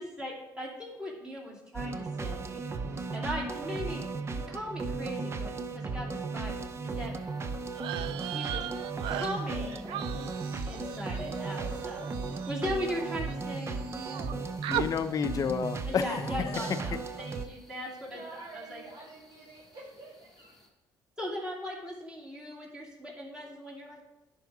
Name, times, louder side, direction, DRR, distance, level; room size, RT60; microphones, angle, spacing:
voice 1, 0.0-2.6 2.9-4.0 4.3-6.5 7.0-7.1 8.3-8.7 9.1-10.0 10.6-14.3 15.8-18.8 21.2-24.0, equal, 10° right, -4 dB, 2.6 m, -39 dB
sound 1, 1.7-17.4, right 3 dB, 30° right, 0.6 m, -36 dB
sound 2, 6.9-20.7, left 1 dB, 5° left, 1.7 m, -52 dB
sound 3, 7.7-13.3 13.6-14.3 14.6-14.9, right 12 dB, 75° right, 0.4 m, -38 dB
voice 2, 14.7-16.8, left 7 dB, 45° left, 10 dB, 0.5 m, -31 dB
voice 3, 18.1-20.6, right 2 dB, 55° right, -5 dB, 1.8 m, -48 dB
10.5 x 4.8 x 3.9 m, 0.95 s
cardioid pair, 95°, 9 cm